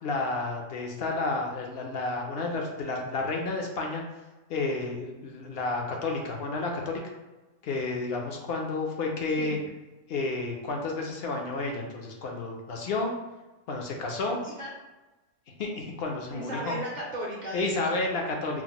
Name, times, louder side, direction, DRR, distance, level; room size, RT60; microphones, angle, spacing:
voice 1, 0.0-4.0 4.5-7.0 7.6-9.6 10.1-13.1 13.7-14.4 15.6-16.8 17.5-18.6, left 3 dB, 60° left, 1 dB, 0.7 m, -31 dB
voice 2, 14.4-14.7 16.3-18.0, right 1 dB, 50° right, -5 dB, 0.6 m, -36 dB
2.9 x 2.0 x 3.7 m, 1.1 s
omnidirectional pair, 1.3 m